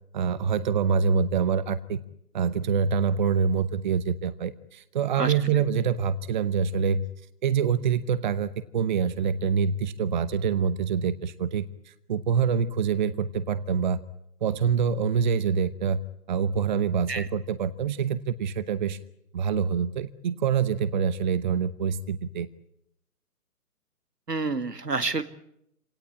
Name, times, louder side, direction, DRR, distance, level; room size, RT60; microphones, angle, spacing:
voice 1, 0.1-2.0 2.3-7.0 7.4-14.0 14.4-16.0 16.3-19.0 19.3-22.5, right 6 dB, 30° right, 17 dB, 0.8 m, -25 dB
voice 2, 24.3-25.2, right 3 dB, 90° right, 11 dB, 2.0 m, -28 dB
26.0 x 18.0 x 8.6 m, 0.78 s
figure-of-eight pair, 135°, 47 cm